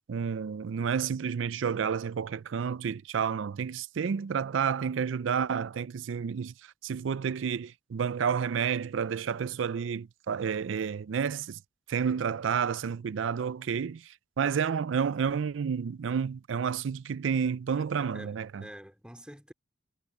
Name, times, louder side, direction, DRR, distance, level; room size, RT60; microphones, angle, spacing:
voice 1, 0.1-6.5 6.8-11.6 11.9-18.7, right 7 dB, 90° right, 0.4 m, -30 dB
voice 2, 17.7-19.5, equal, 5° right, 2.5 m, -48 dB
head